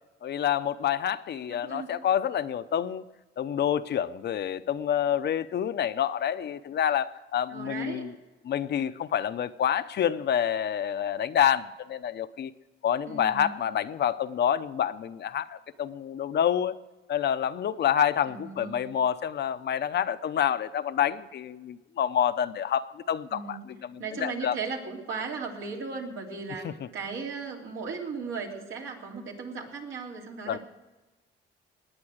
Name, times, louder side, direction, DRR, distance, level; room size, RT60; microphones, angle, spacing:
voice 1, 0.2-3.0 3.4-8.1 8.4-12.5 12.8-16.7 17.1-24.5 26.6-26.7 30.5-30.6, left 9 dB, 60° left, 12 dB, 0.7 m, -28 dB
voice 2, 1.5-1.9 7.5-8.1 13.1-13.6 18.3-18.9 23.3-23.6 24.0-30.6, right 5 dB, 80° right, -1 dB, 3.2 m, -37 dB
18.5 x 9.7 x 6.4 m, 1.1 s
cardioid pair, 90°, 20 cm